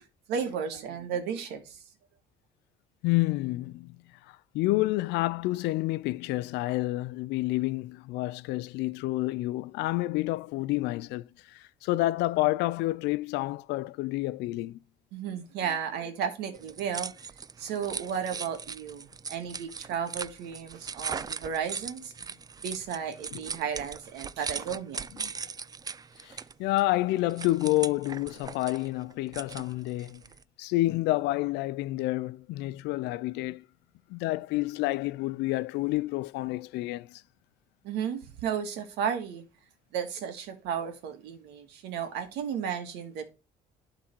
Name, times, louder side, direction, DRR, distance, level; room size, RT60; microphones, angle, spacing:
voice 1, 0.3-1.8 15.1-17.1 17.6-22.1 22.6-25.1 37.8-39.4 39.9-43.3, right 7 dB, 85° right, 1.9 m, -34 dB
voice 2, 3.0-4.0 4.3-14.8 23.3-23.4 25.2-25.3 26.2-30.2 30.6-33.6 34.1-37.2, left 18 dB, 90° left, 0.5 m, -29 dB
sound 1, 16.5-30.4, right 5 dB, 20° right, 0.4 m, -39 dB
11.5 x 3.9 x 4.5 m
cardioid pair, 110°, 17 cm